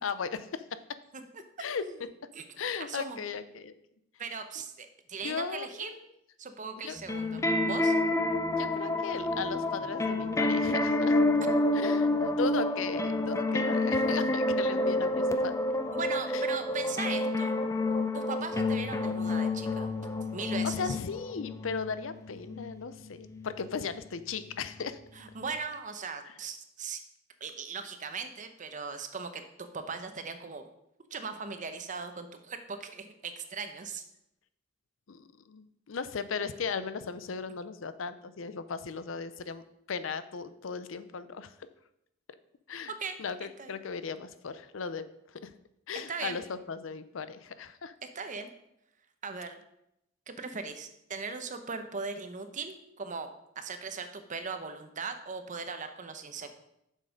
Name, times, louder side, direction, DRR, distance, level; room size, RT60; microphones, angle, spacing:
voice 1, 0.0-0.6 1.6-1.8 2.6-3.7 5.2-5.9 6.8-7.0 8.5-11.2 11.7-15.5 16.3-16.4 20.6-25.0 35.1-39.6 39.9-41.5 42.7-42.9 43.2-45.1 45.4-45.5 45.9-47.9, left 5 dB, 85° left, 13 dB, 0.6 m, -37 dB
voice 2, 2.9-3.2 4.2-5.9 6.4-7.4 7.7-7.9 15.9-17.5 18.1-19.9 20.3-21.0 25.1-27.0 27.4-30.6 31.1-34.0 42.9-43.2 43.6-43.8 46.1-46.4 48.1-48.5 49.2-49.6 50.3-53.3 53.6-56.5, right 5 dB, 40° right, 8 dB, 0.8 m, -38 dB
sound 1, 7.0-23.7 24.4-24.6, left 2 dB, 15° left, 0.5 m, -29 dB
7.4 x 6.4 x 5.1 m, 0.81 s
head